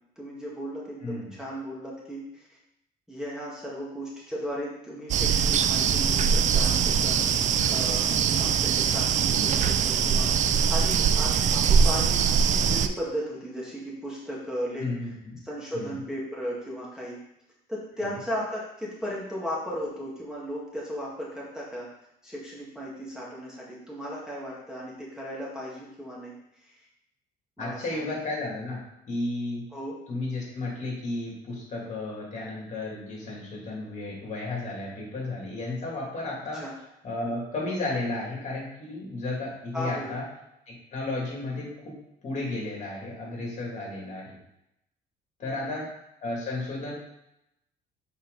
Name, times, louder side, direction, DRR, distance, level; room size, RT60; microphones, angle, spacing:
voice 1, 0.2-2.5 3.1-7.2 7.7-14.9 15.4-17.2 17.7-21.9 22.2-26.9 27.6-28.1 29.7-30.0 36.5-36.7 39.7-40.2 45.4-45.8, equal, 5° right, -6 dB, 2.0 m, -36 dB
sound 1, 5.1-12.9, right 7 dB, 45° right, 0.4 m, -22 dB
voice 2, 14.8-15.4 15.7-16.0 18.0-18.1 27.6-28.8 29.1-29.6 30.1-36.6 37.0-40.2 40.7-41.9 42.2-44.4 45.4-45.9 46.2-46.9, left 2 dB, 45° left, -3 dB, 2.7 m, -33 dB
8.0 x 4.3 x 4.1 m, 0.83 s
cardioid pair, 110°, 17 cm